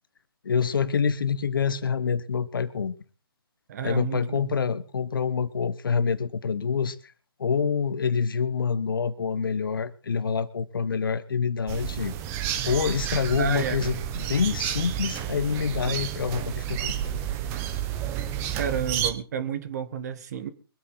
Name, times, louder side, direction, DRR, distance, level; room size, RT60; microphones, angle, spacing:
voice 1, 0.4-3.0 3.8-7.0 7.4-12.1 12.6-14.0 14.3-16.9, left 6 dB, 60° left, 15 dB, 1.3 m, -26 dB
voice 2, 3.7-4.5 13.3-13.9 18.5-20.5, right 7 dB, 40° right, 10 dB, 1.7 m, -31 dB
sound 1, 11.7-19.1, right 10 dB, 20° right, 1.2 m, -31 dB
23.5 x 8.7 x 4.0 m, 0.37 s
figure-of-eight pair, 140°, 13 cm